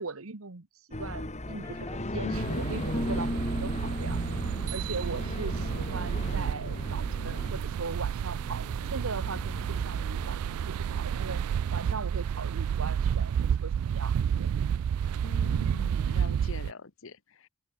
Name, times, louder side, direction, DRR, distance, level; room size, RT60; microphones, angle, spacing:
voice 1, 0.0-4.3 4.7-8.6 8.9-11.4 11.7-14.5, right 4 dB, 70° right, 1.3 m, -40 dB
sound 1, 0.9-13.4, left 1 dB, 35° left, 2.7 m, -38 dB
sound 2, 1.5-2.5 2.8-5.8, left 1 dB, 15° left, 0.6 m, -38 dB
sound 3, 2.3-16.7, right 8 dB, 90° right, 0.3 m, -30 dB
voice 2, 15.2-17.5, left 3 dB, 65° left, 1.3 m, -44 dB
open air
head